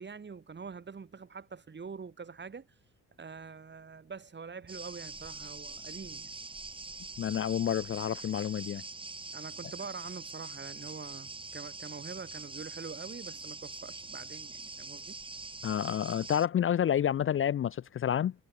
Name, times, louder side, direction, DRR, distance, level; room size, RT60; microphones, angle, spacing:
voice 1, 0.0-2.7 3.2-6.4 9.3-15.2, right 5 dB, 35° right, 7.7 m, -45 dB
sound 1, 4.7-16.5, right 3 dB, 15° right, 2.0 m, -44 dB
voice 2, 7.2-8.8 15.6-18.3, left 9 dB, 45° left, 0.6 m, -29 dB
cardioid pair, 90°, 30 cm